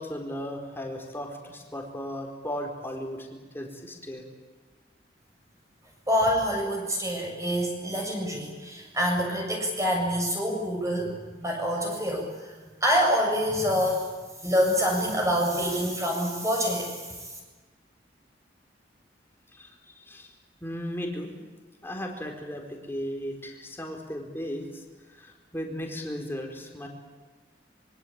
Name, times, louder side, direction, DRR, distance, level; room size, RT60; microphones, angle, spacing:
voice 1, 0.0-3.3 3.5-4.2 19.5-20.3 20.6-21.3 21.8-24.8 25.2-26.9, equal, 15° left, 2 dB, 4.3 m, -36 dB
voice 2, 6.1-11.1 11.4-12.5 12.8-14.1 14.4-17.3, equal, 20° right, 1 dB, 7.1 m, -26 dB
25.5 x 24.0 x 8.8 m, 1.3 s
head